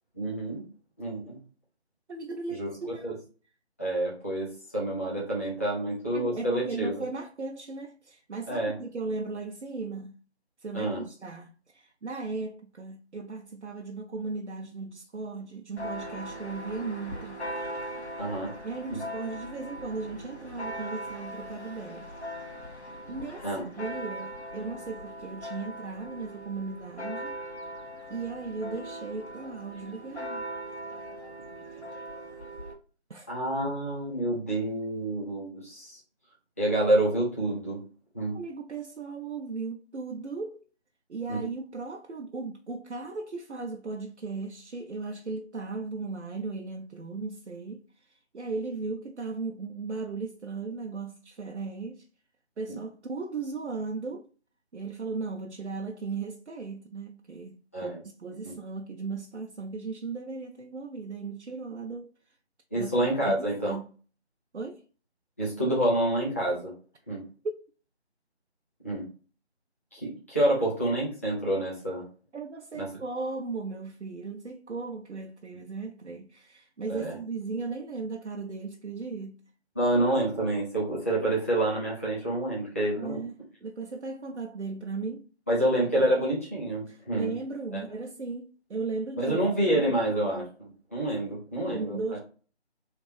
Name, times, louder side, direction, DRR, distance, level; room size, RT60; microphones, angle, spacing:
voice 1, 0.1-0.6 1.0-1.4 2.5-2.7 3.0-3.1 3.8-7.0 8.5-8.7 10.7-11.0 18.2-18.5 18.9-19.0 23.4-23.6 33.3-36.0 36.6-37.8 38.1-38.4 41.3-41.4 57.7-58.0 58.4-58.5 62.7-63.7 65.4-66.7 67.1-67.2 68.8-69.1 69.9-72.0 72.7-72.9 76.9-77.1 79.7-83.2 85.5-87.3 87.7-87.8 89.2-90.5 90.9-92.0, right 1 dB, 15° left, 0.7 m, -28 dB
voice 2, 2.1-3.2 6.1-10.1 10.6-17.4 18.6-22.1 23.1-27.4 28.1-30.4 33.1-33.3 38.3-40.6 41.1-52.1 52.6-54.3 54.7-57.9 58.2-62.1 62.7-62.9 63.2-63.9 64.5-64.8 72.3-79.4 83.0-83.3 83.6-85.3 86.9-89.4 90.1-90.3 91.5-92.2, right 4 dB, 90° right, 0.6 m, -37 dB
Church bell, 15.8-32.7, equal, 80° left, 1.3 m, -40 dB
3.3 x 3.1 x 4.8 m
figure-of-eight pair, 160°, 33 cm